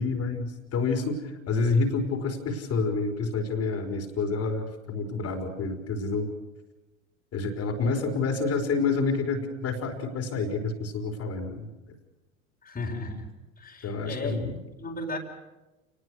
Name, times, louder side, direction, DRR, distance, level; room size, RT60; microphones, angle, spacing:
voice 1, 0.0-6.3 7.3-11.7 13.8-14.6, left 4 dB, 35° left, 4 dB, 4.6 m, -28 dB
voice 2, 12.6-13.3 13.6-14.5 14.8-15.2, left 2 dB, 20° left, 0 dB, 4.3 m, -35 dB
28.5 x 20.0 x 6.4 m, 1.1 s
figure-of-eight pair, 80°, 40 cm